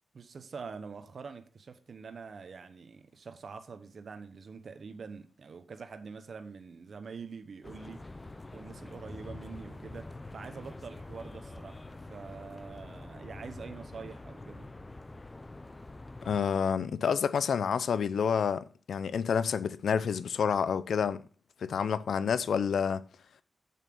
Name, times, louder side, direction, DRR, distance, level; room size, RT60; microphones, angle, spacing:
voice 1, 0.1-8.1 8.5-14.7, right 5 dB, 55° right, 0.9 m, -45 dB
sound 1, 7.6-16.4, left 2 dB, 20° left, 0.6 m, -46 dB
voice 2, 16.2-21.2 21.6-23.0, left 7 dB, 85° left, 0.5 m, -29 dB
7.3 x 5.7 x 6.0 m
wide cardioid pair, 125°, 0 cm